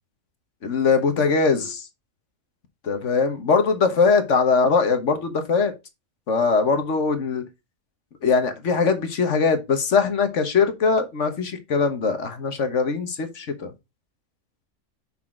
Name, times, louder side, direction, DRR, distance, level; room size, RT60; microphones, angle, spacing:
voice 1, 0.6-1.7 2.8-5.7 6.3-7.4 8.2-13.7, left 5 dB, 60° left, 1.5 m, -21 dB
6.2 x 5.7 x 3.7 m
omnidirectional pair, 1.5 m